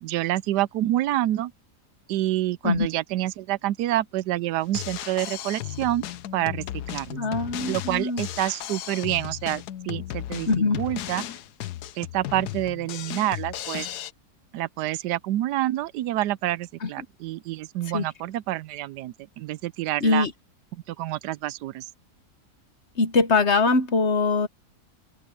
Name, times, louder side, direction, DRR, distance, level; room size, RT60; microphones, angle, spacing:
voice 1, 0.0-1.5 2.1-6.0 6.3-7.2 7.6-10.5 10.8-11.2 11.9-13.9 14.5-20.3 20.9-21.9, right 14 dB, 85° right, 1.2 m, -27 dB
Drum kit, 4.6-14.1, left 13 dB, 75° left, 1.3 m, -35 dB
voice 2, 7.2-8.2 10.5-10.8 16.8-16.9 17.9-18.0 20.0-20.3 23.0-24.5, left 3 dB, 45° left, 1.2 m, -22 dB
open air
omnidirectional pair, 1.7 m